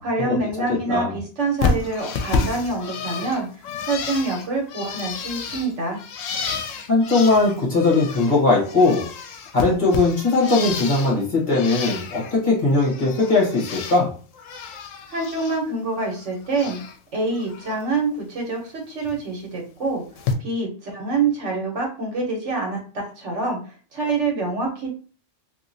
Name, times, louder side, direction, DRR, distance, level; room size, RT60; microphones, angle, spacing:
voice 1, 0.0-6.0 15.1-16.8 17.1-20.0 20.4-24.9, right 3 dB, 70° right, 0 dB, 1.3 m, -26 dB
Bird, 1.6-8.4 8.6-11.2 11.5-12.3 12.7-14.0 14.3-15.6 15.9-17.0 17.3-17.8 19.0-19.2 20.2-20.3, left 5 dB, 85° left, 1.0 m, -30 dB
voice 2, 6.9-9.0 9.5-14.1, left 3 dB, 40° left, -5 dB, 1.4 m, -19 dB
2.8 x 2.8 x 2.6 m, 0.39 s
omnidirectional pair, 1.3 m